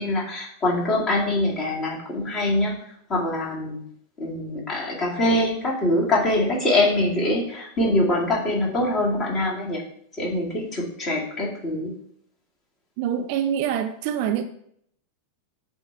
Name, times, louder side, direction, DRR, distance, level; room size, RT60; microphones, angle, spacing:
voice 1, 0.0-2.7 3.1-3.8 4.2-9.8 10.2-11.9, left 1 dB, 30° left, -4 dB, 2.4 m, -24 dB
voice 2, 13.0-14.4, right 9 dB, 45° right, 7 dB, 0.5 m, -25 dB
7.7 x 2.8 x 4.6 m, 0.67 s
figure-of-eight pair, 90°, 0 cm